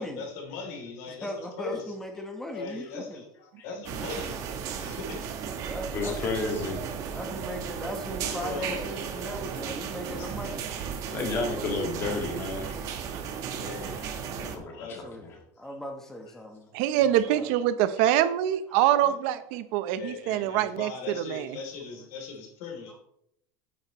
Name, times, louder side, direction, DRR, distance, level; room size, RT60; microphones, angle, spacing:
voice 1, 0.0-1.8 2.5-5.3 8.3-9.2 9.5-9.6 10.0-10.3 12.0-12.5 13.6-15.7 19.0-19.1 19.9-23.0, left 4 dB, 60° left, 1 dB, 3.1 m, -40 dB
voice 2, 1.1-3.2 5.7-6.5 7.1-10.8 15.0-15.3 15.6-16.7 17.0-17.5 18.7-18.8 20.4-20.5, equal, 5° left, 3 dB, 1.1 m, -38 dB
sound 1, 3.8-14.6, right 7 dB, 40° right, 1.1 m, -35 dB
voice 3, 5.9-6.8 11.1-12.8 14.4-15.0, left 3 dB, 25° left, 2 dB, 1.8 m, -31 dB
voice 4, 16.7-20.9 21.2-21.6, right 12 dB, 55° right, 12 dB, 0.8 m, -25 dB
9.4 x 9.1 x 3.1 m, 0.73 s
supercardioid pair, 170°, 9 cm